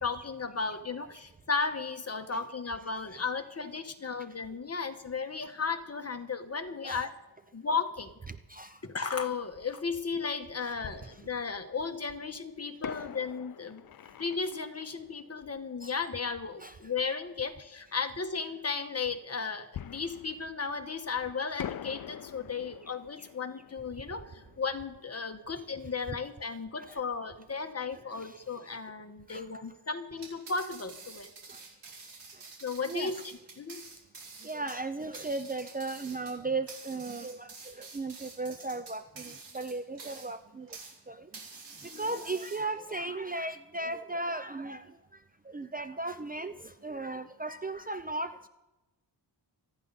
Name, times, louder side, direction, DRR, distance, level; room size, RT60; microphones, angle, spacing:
voice 1, 0.0-7.1 7.5-8.2 8.8-13.8 14.2-31.3 32.6-33.8 41.8-42.1, left 5 dB, 35° left, 7 dB, 1.4 m, -35 dB
voice 2, 8.5-8.8 15.8-15.9 16.6-16.7 24.0-24.1 26.9-27.0 28.2-28.4 29.3-29.5 31.5-31.6 32.9-33.1 34.4-40.7 41.1-41.3 41.8-45.0 45.4-48.5, right 2 dB, 20° right, 10 dB, 0.6 m, -36 dB
Fireworks, 9.5-9.6 10.8-11.9 12.8-16.3 19.7-21.2 21.6-26.1 26.4-26.5 27.0-27.2, left 10 dB, 55° left, 0.5 m, -45 dB
sound 1, 30.1-41.0 41.3-42.9, right 4 dB, 75° right, 5.0 m, -48 dB
27.0 x 10.5 x 4.1 m, 0.99 s
wide cardioid pair, 115°, 42 cm